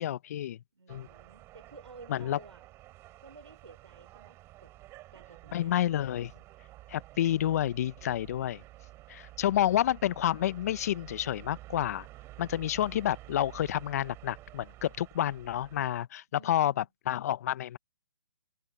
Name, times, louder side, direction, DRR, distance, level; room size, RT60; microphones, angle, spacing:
voice 1, 0.0-0.6 0.9-1.1 2.1-2.4 5.5-6.3 6.9-8.6 9.1-12.1 12.4-17.8, left 12 dB, 35° left, 0.6 m, -29 dB
voice 2, 0.7-2.7 3.2-4.7 5.1-5.9 9.5-9.6 16.3-16.9, right 4 dB, 90° right, 4.8 m, -53 dB
sound 1, 0.9-16.1, right 17 dB, 20° right, 5.6 m, -51 dB
hypercardioid pair, 155°, 14 cm